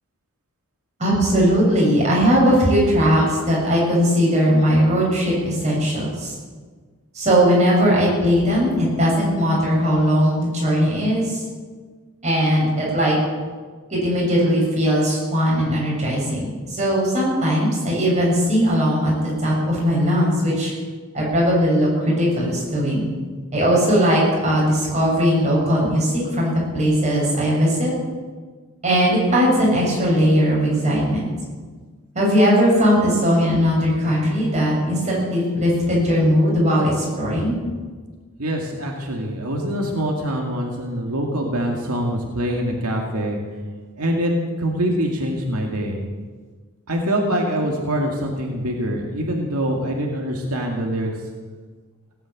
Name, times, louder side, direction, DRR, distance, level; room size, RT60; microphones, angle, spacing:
voice 1, 1.0-6.3 7.1-11.4 12.2-13.2 13.9-20.7 21.1-23.1 23.5-27.9 28.8-31.3 32.1-37.6, equal, 30° right, -4 dB, 6.9 m, -19 dB
voice 2, 38.4-43.4 44.0-44.3 44.6-46.0 46.9-51.1, equal, 90° right, 0 dB, 2.2 m, -24 dB
17.5 x 9.3 x 8.5 m, 1.5 s
head